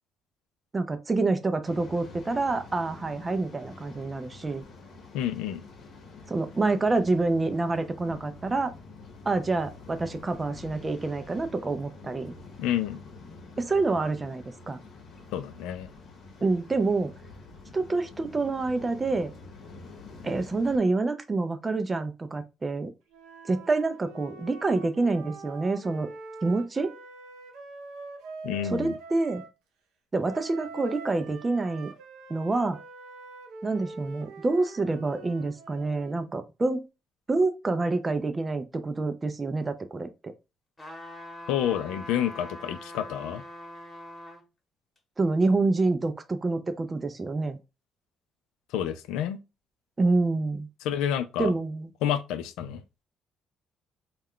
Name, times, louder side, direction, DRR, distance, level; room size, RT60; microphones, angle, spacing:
voice 1, 0.7-4.6 6.3-8.7 9.3-12.3 13.6-14.8 16.4-17.1 17.7-19.3 20.2-22.9 23.5-26.1 26.4-26.9 28.6-29.4 30.1-31.9 32.3-32.8 33.6-36.8 37.3-40.3 45.2-47.6 50.0-50.7 51.4-51.9, right 3 dB, 25° right, 0.4 m, -27 dB
Waves surf, 1.6-20.8, left 3 dB, 60° left, 0.8 m, -47 dB
voice 2, 5.1-5.6 12.6-13.0 15.3-15.9 28.4-28.9 41.5-43.4 48.7-49.4 50.8-51.5 52.0-52.8, left 10 dB, 90° left, 0.3 m, -29 dB
Wind instrument woodwind instrument, 23.1-29.5 30.2-36.3, right 3 dB, 90° right, 0.6 m, -44 dB
sound 1, 40.8-44.4 45.0-45.1, left 1 dB, 20° left, 1.0 m, -42 dB
2.3 x 2.2 x 3.5 m
cardioid pair, 80°, 0 cm